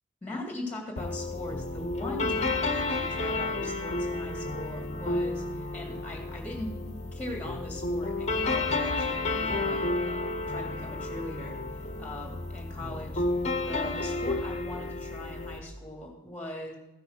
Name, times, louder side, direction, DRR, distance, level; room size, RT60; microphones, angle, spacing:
voice 1, 0.2-6.8 7.1-16.8, left 1 dB, 5° left, 1 dB, 2.3 m, -40 dB
sound 1, 1.0-15.6, left 2 dB, 35° left, 1.0 m, -31 dB
15.0 x 6.1 x 6.3 m, 0.99 s
head